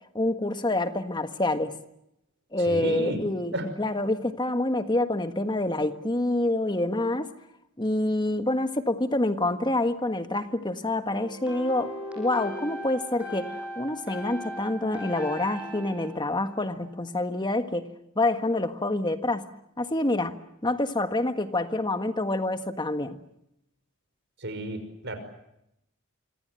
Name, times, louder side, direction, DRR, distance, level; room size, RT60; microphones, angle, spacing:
voice 1, 0.1-1.7 2.5-7.3 7.8-17.9 18.1-19.5 19.8-20.3 20.6-23.2, left 2 dB, 20° left, 8 dB, 1.6 m, -27 dB
voice 2, 2.6-3.2 3.5-3.7 24.4-25.2, right 1 dB, 55° right, 9 dB, 5.8 m, -33 dB
sound 1, 11.1-17.1, equal, 5° right, 7.0 m, -38 dB
26.0 x 25.5 x 7.8 m, 0.82 s
head